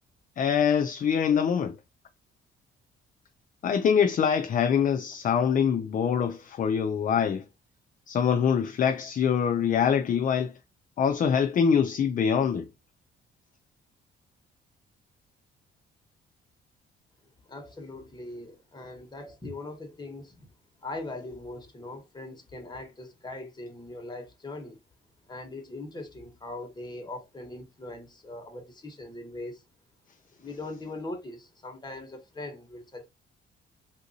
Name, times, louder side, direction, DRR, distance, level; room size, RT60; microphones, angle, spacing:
voice 1, 0.4-1.8 3.6-7.4 8.1-10.6 11.0-12.7, left 7 dB, 40° left, 0.4 m, -24 dB
voice 2, 17.5-20.5 20.8-24.8 25.3-29.6 30.3-33.1, left 2 dB, 20° left, 1.2 m, -40 dB
3.6 x 2.6 x 2.7 m
cardioid pair, 90°, 20 cm